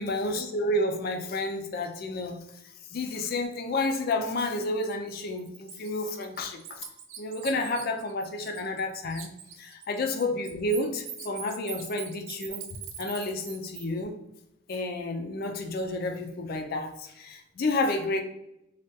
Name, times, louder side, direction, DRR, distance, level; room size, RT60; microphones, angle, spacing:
voice 1, 0.0-2.4 2.9-6.9 7.2-9.3 9.6-12.6 13.0-14.1 14.7-18.2, left 2 dB, 45° left, 5 dB, 0.4 m, -30 dB
Bird, 4.8-4.9 5.4-8.8 9.1-13.9, right 9 dB, 70° right, 0.4 m, -42 dB
3.4 x 2.3 x 2.7 m, 0.86 s
head